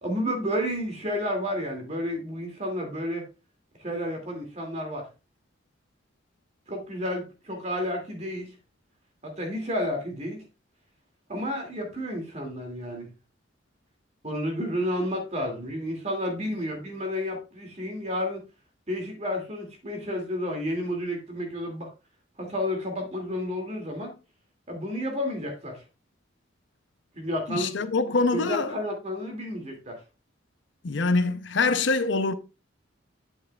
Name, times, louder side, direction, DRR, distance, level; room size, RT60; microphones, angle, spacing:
voice 1, 0.0-3.2 3.8-5.0 6.7-8.5 9.2-10.4 11.3-13.1 14.2-18.4 18.9-21.9 22.4-24.1 24.7-25.8 27.1-27.7 28.3-30.0, equal, 35° right, 2.4 m, -31 dB
voice 2, 27.5-28.8 30.8-32.3, left 3 dB, 70° left, 0.7 m, -24 dB
8.8 x 8.2 x 2.3 m
head